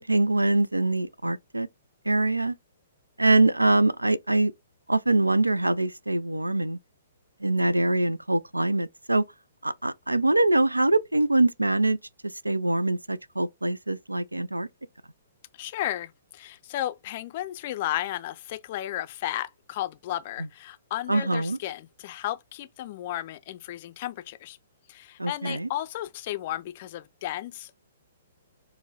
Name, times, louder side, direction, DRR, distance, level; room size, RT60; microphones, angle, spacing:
voice 1, 0.0-1.7 2.1-2.6 3.2-4.5 4.9-6.8 7.4-9.2 9.6-12.0 12.4-14.7 21.1-21.6 25.2-25.7, right 2 dB, 80° right, 0.3 m, -23 dB
voice 2, 15.6-24.6 24.9-27.8, left 13 dB, 40° left, 0.4 m, -34 dB
4.5 x 2.1 x 3.9 m
figure-of-eight pair, 120°, 0 cm